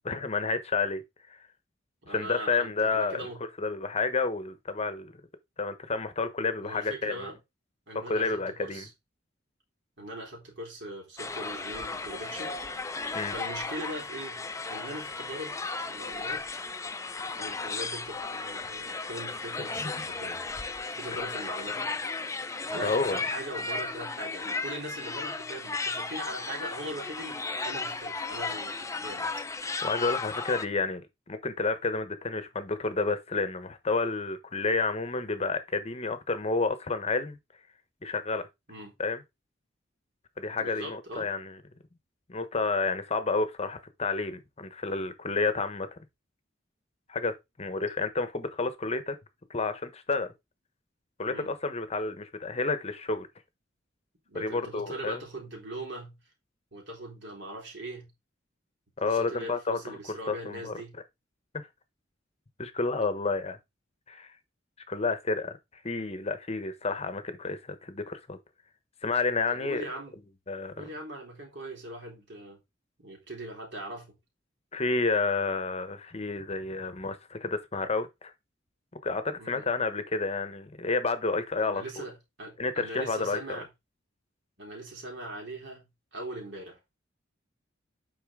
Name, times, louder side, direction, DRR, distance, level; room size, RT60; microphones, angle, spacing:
voice 1, 0.0-1.0 1.3-1.4 2.1-3.3 3.6-5.1 5.6-7.3 8.1-8.8 13.1-13.3 19.8-19.9 22.8-23.2 29.8-37.4 38.0-38.5 39.0-39.2 40.4-41.6 42.3-46.0 47.1-47.3 47.6-49.2 49.5-50.3 51.2-53.3 54.3-55.2 59.0-60.8 61.5-61.7 62.6-63.6 64.1-64.3 64.9-65.6 65.8-68.4 69.0-69.8 70.5-70.9 74.7-78.3 79.0-82.0 82.6-83.4, left 3 dB, 35° left, 0.9 m, -30 dB
voice 2, 2.0-3.4 6.6-7.4 7.9-8.9 10.0-12.6 13.3-16.6 17.4-20.5 20.9-22.0 22.7-29.3 38.7-39.0 40.6-41.3 51.3-51.5 54.3-56.2 56.7-58.1 59.0-60.9 69.5-70.2 70.7-72.6 73.0-74.1 79.4-79.6 81.6-83.7 84.6-86.8, right 1 dB, 65° right, 3.7 m, -41 dB
sound 1, 11.2-30.7, left 3 dB, 15° left, 0.6 m, -35 dB
8.5 x 5.4 x 3.6 m
head